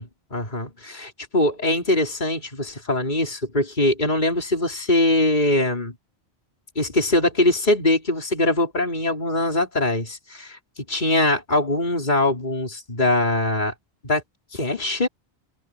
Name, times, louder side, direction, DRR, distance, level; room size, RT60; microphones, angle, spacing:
voice 1, 0.0-5.9 6.8-13.7 14.0-14.2 14.5-15.1, left 1 dB, 45° left, 4.1 m, -22 dB
omnidirectional pair, 1.1 m